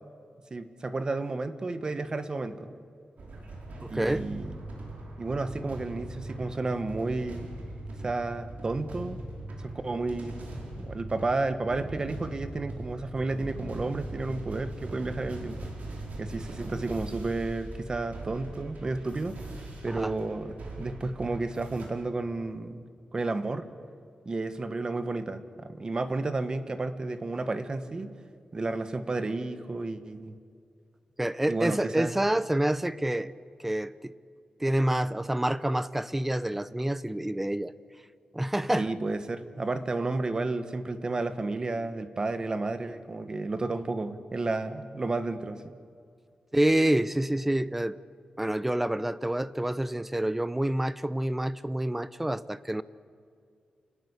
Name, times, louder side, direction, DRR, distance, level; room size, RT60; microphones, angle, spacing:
voice 1, 0.5-2.7 3.9-4.6 5.2-7.5 8.0-9.2 9.6-10.3 10.8-15.7 16.2-19.4 19.8-22.8 23.1-23.7 24.2-28.2 28.5-30.4 31.5-32.2 38.8-45.7, right 3 dB, 30° right, 10 dB, 1.4 m, -32 dB
sound 1, 3.2-21.9, right 1 dB, 85° right, 5.0 m, -40 dB
voice 2, 3.8-4.3 19.9-20.1 31.2-33.3 33.6-34.1 34.6-37.7 38.3-38.9 46.5-48.0 48.4-52.8, right 1 dB, 10° right, 15 dB, 0.7 m, -27 dB
28.0 x 20.5 x 8.3 m, 2.3 s
wide cardioid pair, 155°, 2 cm